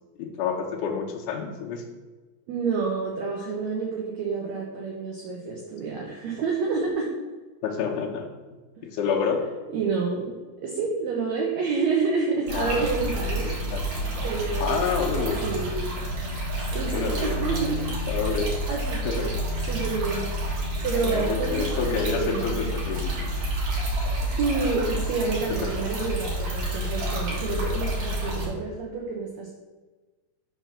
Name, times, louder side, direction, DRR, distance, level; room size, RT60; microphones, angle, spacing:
voice 1, 0.2-1.8 7.6-8.3 8.8-9.5 12.5-12.9 13.7-13.8 14.6-15.4 16.9-17.4 18.1-18.5 19.1-19.3 21.0-23.3 25.6-25.7, left 6 dB, 75° left, 2 dB, 2.1 m, -28 dB
voice 2, 2.5-7.1 9.7-13.6 14.2-15.1 15.4-15.7 16.7-17.9 18.7-19.3 19.6-22.6 24.2-29.5, right 4 dB, 75° right, -2 dB, 1.6 m, -29 dB
sound 1, 12.5-28.5, right 1 dB, 55° right, 2.4 m, -29 dB
5.7 x 4.4 x 5.7 m, 1.3 s
omnidirectional pair, 4.2 m